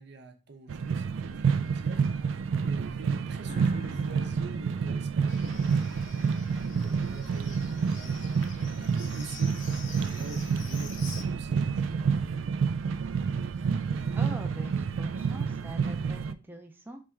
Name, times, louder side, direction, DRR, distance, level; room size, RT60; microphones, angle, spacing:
voice 1, 0.0-5.6 6.4-12.1, right 3 dB, 60° right, 0.8 m, -45 dB
sound 1, 0.7-16.3, right 5 dB, 85° right, 0.3 m, -29 dB
sound 2, 3.4-6.1, left 1 dB, 45° left, 0.7 m, -51 dB
Livestock farm animals working animals, 5.3-11.2, left 5 dB, 75° left, 0.8 m, -47 dB
voice 2, 14.1-17.0, right 1 dB, 10° right, 0.5 m, -43 dB
3.6 x 3.2 x 4.4 m
head